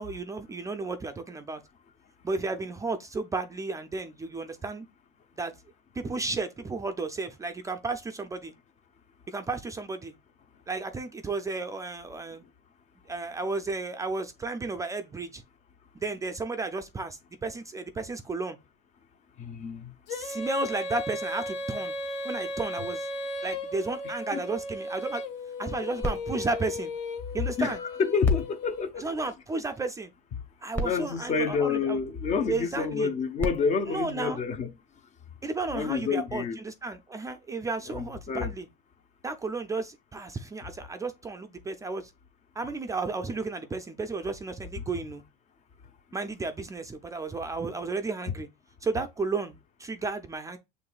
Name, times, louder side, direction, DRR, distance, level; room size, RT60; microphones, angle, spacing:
voice 1, 0.0-1.6 2.2-4.9 5.4-5.5 6.0-8.5 9.3-10.1 10.7-12.4 13.1-15.4 15.9-18.6 20.1-21.9 22.2-23.1 23.4-25.2 25.6-26.9 27.3-27.8 29.0-30.1 30.6-32.0 32.5-33.1 33.9-34.4 35.4-38.7 39.2-42.1 42.6-45.2 46.1-48.5 48.8-50.6, right 3 dB, 15° right, 0.4 m, -33 dB
voice 2, 19.4-19.9 24.0-24.4 27.6-29.1 30.8-34.7 35.7-36.6 37.9-38.5 44.8-44.9, left 5 dB, 35° left, 0.7 m, -28 dB
Female singing, 20.1-28.9, left 1 dB, 65° left, 0.9 m, -36 dB
sound 1, 26.0-27.6 28.2-29.8 30.4-30.5 30.7-32.3 33.1-35.0 35.7-35.8, right 1 dB, 10° left, 0.9 m, -38 dB
6.6 x 3.1 x 2.3 m
supercardioid pair, 125°, 20 cm